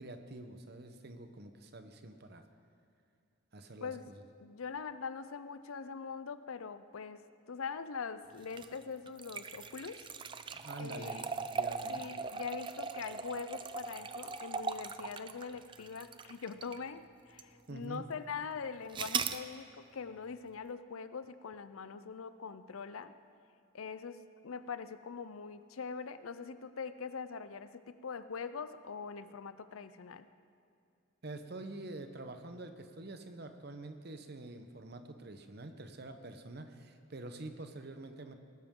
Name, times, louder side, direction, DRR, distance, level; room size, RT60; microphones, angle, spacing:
voice 1, 0.0-2.4 3.5-4.2 10.5-12.0 17.7-18.0 31.2-38.3, right 2 dB, 50° right, 7 dB, 0.9 m, -46 dB
voice 2, 4.4-10.1 10.8-11.3 11.9-23.1 23.7-30.3, left 5 dB, 90° left, 12 dB, 0.6 m, -43 dB
sound 1, 8.4-16.9 17.4-17.5 18.9-19.4, right 5 dB, 25° right, 0.3 m, -39 dB
19.0 x 12.0 x 3.8 m, 2.5 s
head